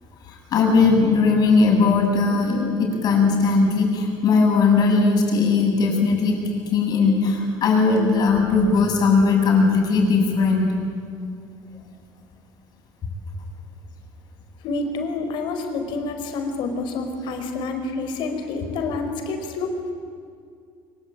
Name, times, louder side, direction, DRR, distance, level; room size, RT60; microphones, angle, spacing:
voice 1, 0.3-6.4 6.7-10.7, left 4 dB, 50° left, 1 dB, 7.9 m, -18 dB
voice 2, 14.6-19.8, left 3 dB, 65° left, 5 dB, 5.0 m, -28 dB
25.5 x 24.5 x 9.0 m, 2.3 s
cardioid pair, 135°, 9 cm